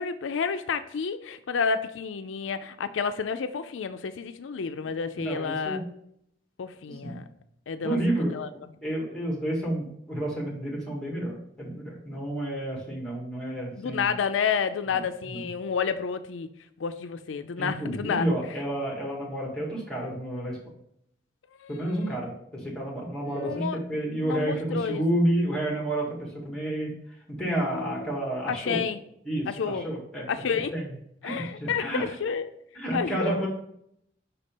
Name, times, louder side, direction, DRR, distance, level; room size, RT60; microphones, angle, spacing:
voice 1, 0.0-5.8 6.6-7.2 7.7-8.0 8.3-8.5 13.8-16.5 16.8-18.6 21.6-21.7 22.0-22.2 23.2-23.8 24.2-25.0 27.7-28.2 28.5-29.0 29.5-29.9 30.3-30.7 31.2-32.5 32.9-33.5, left 6 dB, 85° left, 0.4 m, -30 dB
voice 2, 5.3-5.8 6.9-7.2 7.8-8.3 8.8-14.2 14.9-15.0 15.3-15.4 17.6-20.6 21.7-26.9 27.3-28.8 29.3-30.3 30.7-30.9 31.2-32.0 32.8-33.5, right 1 dB, 5° left, 1.9 m, -30 dB
5.7 x 4.2 x 5.3 m
head